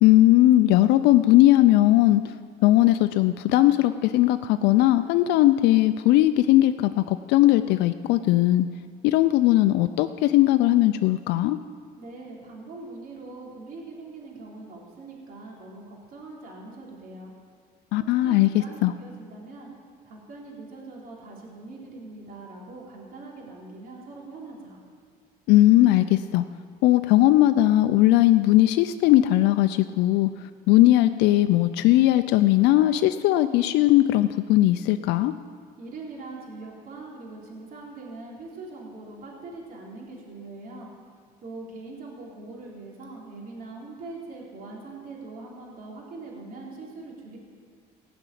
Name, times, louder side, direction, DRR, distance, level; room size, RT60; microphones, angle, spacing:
voice 1, 0.0-2.3 2.6-8.7 9.0-11.6 17.9-18.5 18.8-18.9 25.5-26.4 26.8-30.3 30.7-35.3, left 15 dB, 90° left, 9 dB, 0.4 m, -19 dB
voice 2, 12.0-17.3 18.0-19.7 20.0-24.8 35.8-40.9 41.4-47.4, right 3 dB, 60° right, -2 dB, 3.4 m, -42 dB
17.5 x 6.0 x 9.2 m, 2.1 s
cardioid pair, 110°, 17 cm